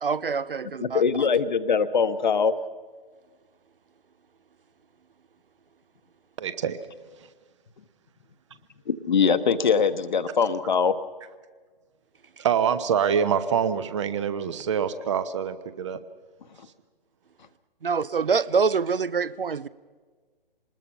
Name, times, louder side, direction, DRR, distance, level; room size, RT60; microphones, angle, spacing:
voice 1, 0.0-1.3 17.8-19.7, right 5 dB, 65° right, 0.6 m, -25 dB
voice 2, 0.8-2.5 9.1-10.9, left 6 dB, 50° left, 1.1 m, -22 dB
voice 3, 6.4-6.8 7.2-7.3 12.4-16.0, right 8 dB, 30° right, 0.9 m, -25 dB
25.5 x 20.0 x 5.7 m
figure-of-eight pair, 135°, 30 cm